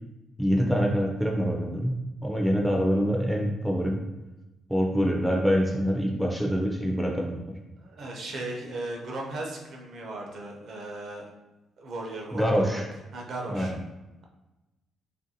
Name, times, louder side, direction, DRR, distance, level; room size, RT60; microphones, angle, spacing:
voice 1, 0.4-1.9 2.2-4.0 4.7-7.5 12.3-12.8 13.5-13.7, equal, ahead, 0 dB, 0.4 m, -25 dB
voice 2, 7.8-11.3 11.8-12.8 13.1-13.7, right 2 dB, 65° right, 0 dB, 0.5 m, -36 dB
2.5 x 2.2 x 2.7 m, 1.0 s
cardioid pair, 90°, 0 cm